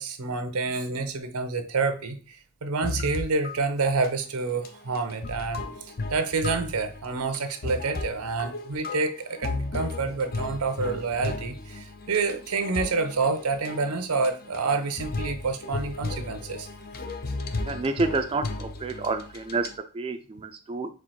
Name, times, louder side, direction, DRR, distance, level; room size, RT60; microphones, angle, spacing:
voice 1, 0.0-2.4 2.6-5.6 6.1-16.7, right 4 dB, 90° right, 8 dB, 0.7 m, -28 dB
sound 1, 2.8-3.6 3.9-4.1 4.5-19.8, left 2 dB, 45° left, 0.5 m, -35 dB
voice 2, 17.7-20.9, right 3 dB, 25° right, 6 dB, 0.3 m, -29 dB
4.5 x 2.4 x 4.2 m, 0.35 s
head